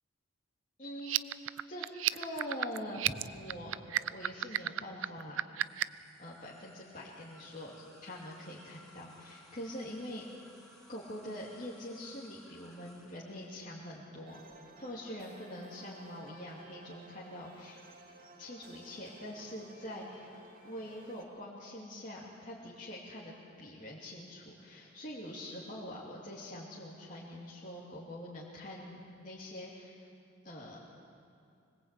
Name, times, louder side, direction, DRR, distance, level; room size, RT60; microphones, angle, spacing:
voice 1, 0.8-1.3 1.7-5.4 6.2-7.7 8.0-10.2 10.9-14.5 14.8-17.8 18.4-30.1 30.4-30.8, left 1 dB, 40° left, -6 dB, 2.8 m, -44 dB
sound 1, 1.0-6.0, right 11 dB, 90° right, 0.5 m, -33 dB
sound 2, 5.6-14.6, equal, ahead, 3.2 m, -60 dB
sound 3, 14.3-21.2, right 2 dB, 45° right, 3.3 m, -55 dB
25.0 x 21.5 x 8.4 m, 2.5 s
head